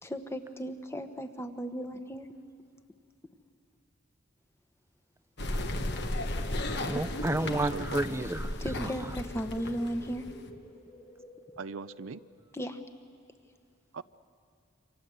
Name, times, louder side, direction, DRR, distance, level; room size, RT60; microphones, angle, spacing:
voice 1, 0.0-2.3 6.9-7.0 8.6-10.2 12.5-12.8, equal, 15° left, 7 dB, 1.2 m, -36 dB
sound 1, 5.4-10.5, left 1 dB, 55° left, 1.4 m, -35 dB
sound 2, 5.7-12.1, equal, 35° left, 3.8 m, -52 dB
voice 2, 6.8-8.9, right 1 dB, 15° right, 12 dB, 0.7 m, -31 dB
voice 3, 7.4-8.0 11.6-12.2 13.9-14.0, right 5 dB, 80° right, 14 dB, 0.6 m, -40 dB
28.0 x 25.5 x 7.9 m, 2.4 s
head